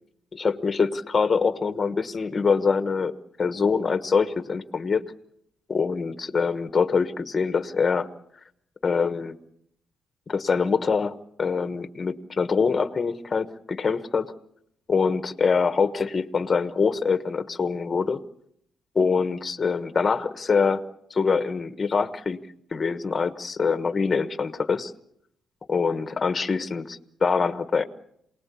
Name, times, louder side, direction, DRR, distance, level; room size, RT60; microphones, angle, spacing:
voice 1, 0.3-5.0 5.7-8.1 8.8-9.4 10.3-14.3 14.9-18.2 18.9-20.8 21.1-22.4 22.7-24.9 25.7-27.8, left 5 dB, 25° left, 10 dB, 1.3 m, -24 dB
28.0 x 19.5 x 8.4 m, 0.74 s
cardioid pair, 165°, 0 cm